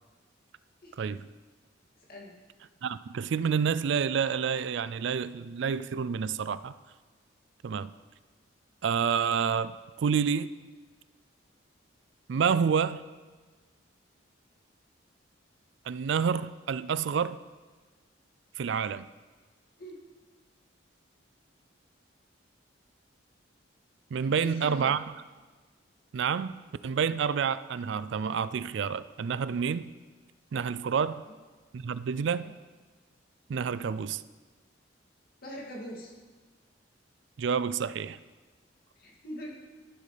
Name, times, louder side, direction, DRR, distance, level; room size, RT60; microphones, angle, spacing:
voice 1, 0.8-1.2 2.1-2.3 19.8-20.0 24.2-24.9 31.1-31.2 32.3-32.5 33.6-33.9 35.4-36.1 39.0-39.5, equal, 50° left, 2.5 m, -43 dB
voice 2, 2.8-6.7 7.6-7.9 8.8-10.5 12.3-13.0 15.9-17.4 18.6-19.1 24.1-25.0 26.1-26.5 26.8-29.9 30.5-31.2 31.7-32.6 33.5-34.2 37.4-38.2, right 6 dB, 65° right, 0.3 m, -28 dB
14.0 x 12.0 x 3.4 m
head